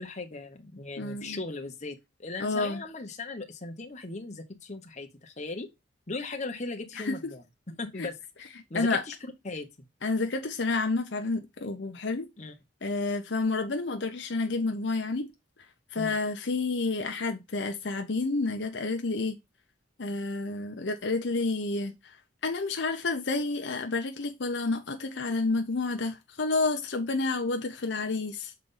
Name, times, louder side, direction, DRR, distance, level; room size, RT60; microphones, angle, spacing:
voice 1, 0.0-5.7 6.1-7.4 7.7-8.2 8.7-9.2 9.4-9.7 12.4-12.5 15.9-16.2, left 3 dB, 40° left, 1.2 m, -38 dB
voice 2, 1.0-1.4 2.4-2.8 7.0-7.3 8.0-8.1 8.7-9.0 10.0-12.3 12.8-15.3 15.9-19.4 20.0-22.2 22.4-28.5, left 3 dB, 75° left, 0.8 m, -30 dB
6.5 x 4.1 x 3.8 m
head